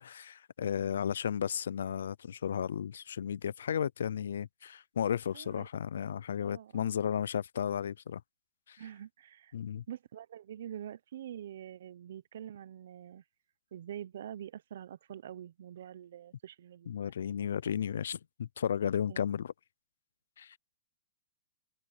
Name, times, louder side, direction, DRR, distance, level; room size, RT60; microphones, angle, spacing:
voice 1, 0.0-8.2 8.7-8.8 9.5-9.8 16.9-19.5 20.4-20.6, left 8 dB, 75° left, 0.3 m, -34 dB
voice 2, 5.3-5.7 6.4-6.9 8.8-9.5 9.9-13.2 13.7-16.9 19.1-19.2, right 10 dB, 50° right, 0.6 m, -45 dB
open air
hypercardioid pair, 180°, 0 cm